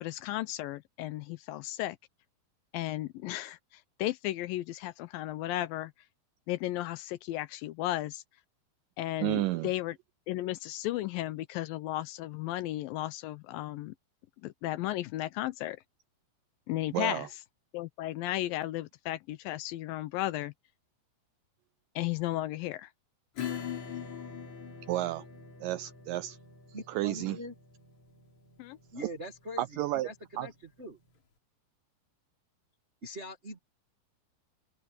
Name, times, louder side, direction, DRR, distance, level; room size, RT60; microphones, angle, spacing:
voice 1, 0.0-2.0 2.7-5.9 6.5-8.2 9.0-10.0 10.3-13.9 14.4-15.8 16.7-17.3 17.7-20.5 22.0-22.9 28.6-28.8, left 15 dB, 80° left, 2.2 m, -34 dB
voice 2, 9.2-9.7 16.9-17.3 24.9-25.3 25.6-26.4 26.9-27.4 29.6-30.1 30.4-30.5, right 16 dB, 85° right, 1.9 m, -31 dB
Acoustic guitar / Strum, 23.4-30.6, left 8 dB, 50° left, 4.4 m, -43 dB
voice 3, 26.7-27.5 28.9-30.5 30.8-31.0 33.0-33.6, equal, 45° right, 0.8 m, -42 dB
open air
omnidirectional pair, 4.4 m